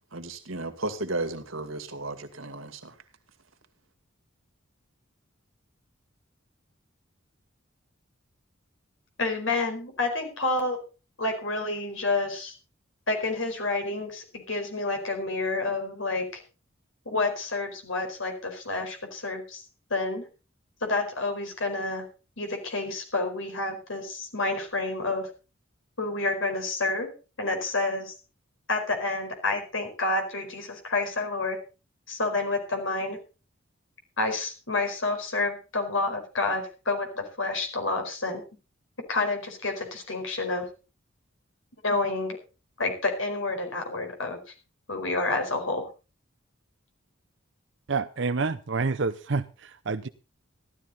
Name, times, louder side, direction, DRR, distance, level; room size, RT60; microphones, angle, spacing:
voice 1, 0.1-3.0, right 2 dB, 85° right, 2.2 m, -34 dB
voice 2, 9.2-10.8 11.2-12.5 13.1-16.4 17.0-19.6 19.9-20.2 20.8-22.1 22.4-25.3 26.0-27.1 27.4-28.1 28.7-31.6 32.1-33.2 34.2-38.4 39.1-40.7 41.8-42.4 42.8-44.4 44.9-45.9, left 2 dB, 75° left, 4.8 m, -29 dB
voice 3, 47.9-50.1, right 4 dB, 60° right, 0.7 m, -28 dB
15.5 x 12.5 x 4.1 m
head